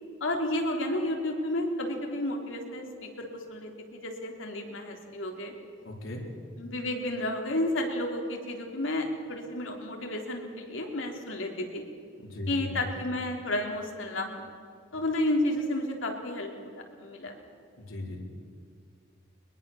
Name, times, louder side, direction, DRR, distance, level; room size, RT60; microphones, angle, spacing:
voice 1, 0.2-5.5 6.6-11.8 12.5-14.4 14.9-17.4, left 1 dB, 70° left, 2 dB, 3.7 m, -32 dB
voice 2, 5.8-6.2 12.2-12.9 17.8-18.2, left 1 dB, 85° left, -1 dB, 4.0 m, -37 dB
22.0 x 22.0 x 7.2 m, 2.4 s
head